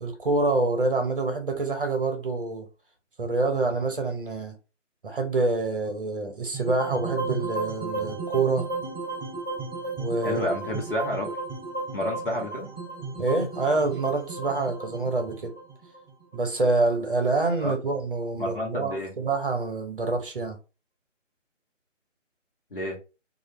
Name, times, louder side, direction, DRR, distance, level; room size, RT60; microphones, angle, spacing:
voice 1, 0.0-2.7 3.2-4.5 5.0-8.7 10.0-10.5 13.2-15.5 16.3-20.6, right 3 dB, 45° right, 0.8 m, -26 dB
sound 1, 6.5-16.7, right 3 dB, 10° left, 2.0 m, -34 dB
voice 2, 10.2-11.4 11.9-12.7 17.6-17.7 18.4-19.1 22.7-23.0, left 1 dB, 45° left, 1.2 m, -30 dB
3.1 x 2.5 x 3.1 m
figure-of-eight pair, 150°, 38 cm